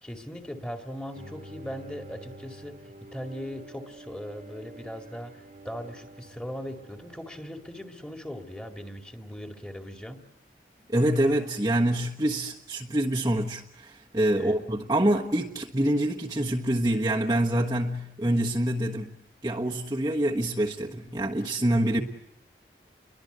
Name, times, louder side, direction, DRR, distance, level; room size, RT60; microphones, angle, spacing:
voice 1, 0.0-10.2 14.3-14.6, equal, 5° left, 2.3 m, -39 dB
Bowed string instrument, 1.1-8.4, right 1 dB, 45° right, 1.7 m, -49 dB
voice 2, 10.9-19.1 19.4-22.0, right 1 dB, 20° right, 1.4 m, -26 dB
30.0 x 23.0 x 8.1 m
head